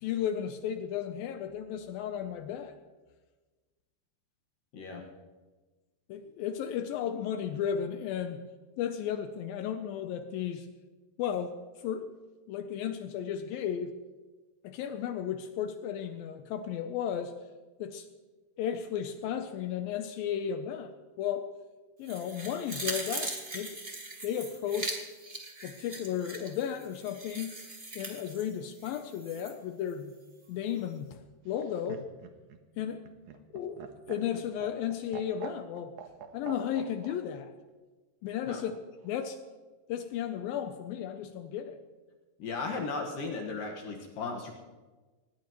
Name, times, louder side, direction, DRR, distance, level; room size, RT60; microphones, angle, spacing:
voice 1, 0.0-2.8 6.1-8.4 8.8-10.7 11.2-11.6 11.8-12.1 12.5-14.0 14.6-17.3 17.8-18.1 18.6-21.5 22.0-23.8 24.2-25.0 25.6-27.6 28.0-30.1 30.5-32.1 32.8-33.0 33.5-33.8 34.1-36.0 36.3-37.5 38.2-38.7 39.0-39.4 39.9-41.8, left 9 dB, 80° left, 8 dB, 2.1 m, -34 dB
voice 2, 4.7-5.0 38.5-38.6 42.4-44.5, left 4 dB, 60° left, 1 dB, 2.8 m, -36 dB
sound 1, 22.1-29.5 29.9-30.0, right 2 dB, 35° right, 0.8 m, -40 dB
Laughter, 31.5-37.2 38.5-39.1, right 8 dB, 80° right, 1.8 m, -45 dB
20.5 x 19.0 x 3.1 m, 1.3 s
omnidirectional pair, 5.0 m